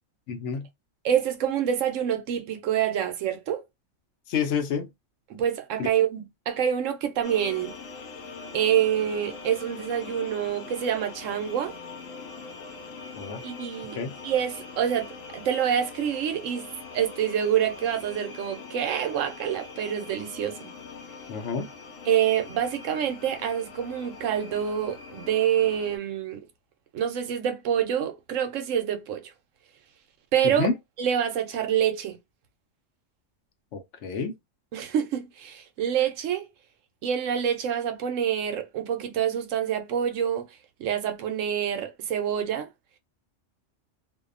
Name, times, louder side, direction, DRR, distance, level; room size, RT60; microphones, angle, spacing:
voice 1, 0.3-0.7 4.3-4.9 5.8-5.9 13.2-13.4 14.0-14.1 21.3-21.7 30.6-30.7 33.7-34.3, left 5 dB, 70° left, 0.9 m, -29 dB
voice 2, 1.0-3.6 5.3-7.7 8.5-11.7 13.4-14.0 14.2-20.7 22.0-26.4 26.9-29.3 30.3-30.7 31.0-32.2 34.7-36.5 37.0-40.5 40.8-42.7, right 9 dB, 80° right, 1.0 m, -26 dB
sound 1, 7.2-26.0, left 4 dB, 90° left, 1.1 m, -42 dB
2.6 x 2.1 x 2.4 m
omnidirectional pair, 1.3 m